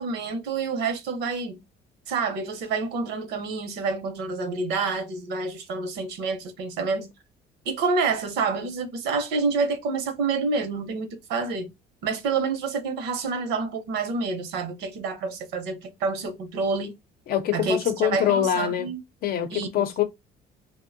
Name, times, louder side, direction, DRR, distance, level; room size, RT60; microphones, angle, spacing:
voice 1, 0.0-1.6 2.1-7.1 7.7-11.7 12.0-16.9 17.5-19.0 19.5-19.9, right 4 dB, 85° right, 0.7 m, -28 dB
voice 2, 17.3-18.9 19.2-20.0, left 10 dB, 65° left, 0.6 m, -24 dB
2.7 x 2.1 x 2.5 m
cardioid pair, 110°, 17 cm